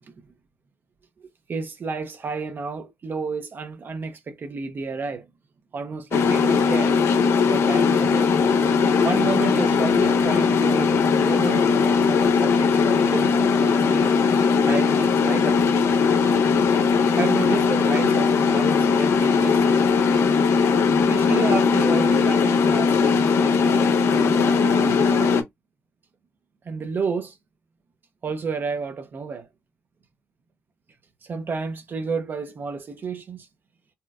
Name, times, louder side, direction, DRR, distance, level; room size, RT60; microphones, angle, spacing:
voice 1, 1.2-5.3 5.7-7.0 7.4-8.3 9.0-14.1 14.6-15.6 17.2-20.2 21.1-25.5 26.6-27.4 28.2-29.5 31.2-33.5, right 4 dB, 50° right, 0.6 m, -31 dB
sound 1, 6.1-25.4, left 5 dB, 80° left, 0.6 m, -19 dB
4.2 x 2.1 x 2.4 m
cardioid pair, 90°, 4 cm